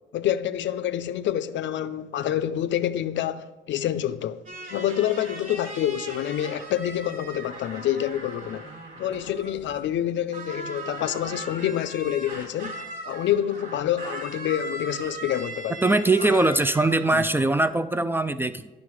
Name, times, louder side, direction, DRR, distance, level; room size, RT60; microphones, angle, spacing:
voice 1, 0.1-4.4 4.7-8.7 9.0-12.8 13.1-15.8 16.2-16.5 17.1-17.3, left 11 dB, 70° left, 0.5 m, -27 dB
sound 1, 4.5-10.0 10.3-17.7, right 1 dB, 40° right, 1.6 m, -39 dB
voice 2, 15.8-18.7, right 2 dB, 10° right, 0.3 m, -22 dB
9.6 x 6.4 x 4.8 m
cardioid pair, 90°, 20 cm